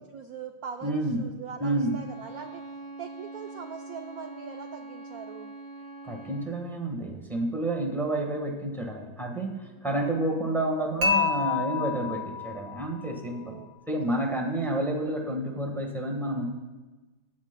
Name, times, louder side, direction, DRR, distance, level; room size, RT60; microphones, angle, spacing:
voice 1, 0.1-2.7 3.0-5.5 10.0-10.1 12.2-12.3 13.3-13.7 14.0-14.5, right 6 dB, 70° right, 4 dB, 0.9 m, -42 dB
voice 2, 0.8-1.2 1.6-1.9 6.0-16.5, right 1 dB, ahead, 2 dB, 1.0 m, -30 dB
Bowed string instrument, 1.7-6.6, right 2 dB, 45° left, 0.3 m, -43 dB
Dishes pots and pans / Chink clink, 11.0-13.1, left 5 dB, 45° right, 1.9 m, -28 dB
21.0 x 9.4 x 2.2 m, 1.2 s
omnidirectional pair, 2.1 m